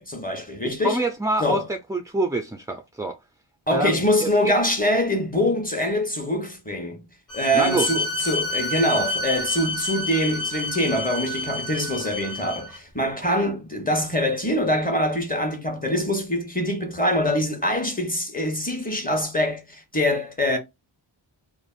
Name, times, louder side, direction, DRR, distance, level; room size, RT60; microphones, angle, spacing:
voice 1, 0.0-1.0 1.4-1.6 3.7-7.0 7.3-20.6, left 1 dB, 20° left, 1.0 m, -24 dB
voice 2, 0.6-3.2 3.7-4.5 7.5-7.9, right 2 dB, 10° right, 0.3 m, -26 dB
Bowed string instrument, 7.3-12.8, left 1 dB, 40° left, 1.2 m, -29 dB
3.3 x 2.0 x 2.3 m
cardioid pair, 40°, 47 cm